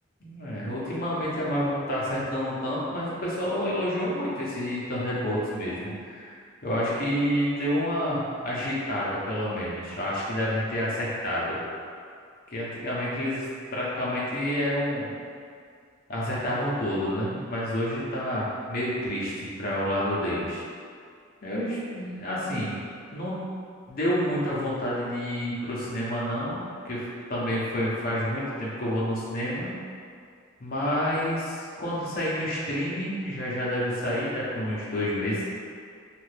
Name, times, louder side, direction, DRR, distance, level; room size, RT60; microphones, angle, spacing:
voice 1, 0.2-6.3 6.6-11.6 12.5-13.4 13.7-15.1 16.1-20.6 21.4-22.8 23.1-23.4 23.9-26.6 26.8-29.7 30.6-35.4, equal, 50° left, -7 dB, 0.7 m, -29 dB
2.7 x 2.5 x 3.3 m, 2.2 s
head